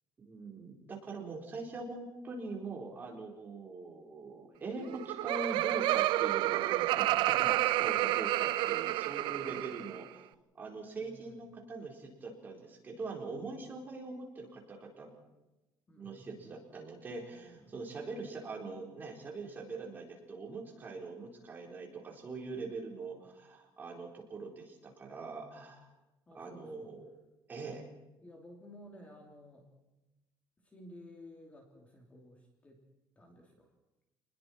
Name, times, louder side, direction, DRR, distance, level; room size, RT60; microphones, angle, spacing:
voice 1, 0.2-10.3 10.5-15.1 16.0-25.9 26.3-27.1 27.5-27.8, right 3 dB, 25° right, 0 dB, 4.3 m, -43 dB
Laughter, 4.8-10.0, right 16 dB, 75° right, 0.7 m, -30 dB
voice 2, 7.1-7.5 10.9-11.5 15.9-16.4 17.6-17.8 26.3-26.9 28.2-29.7 30.6-32.8 33.1-33.7, left 1 dB, 15° left, 2 dB, 2.8 m, -54 dB
28.0 x 21.0 x 4.5 m, 1.0 s
cardioid pair, 180°, 8 cm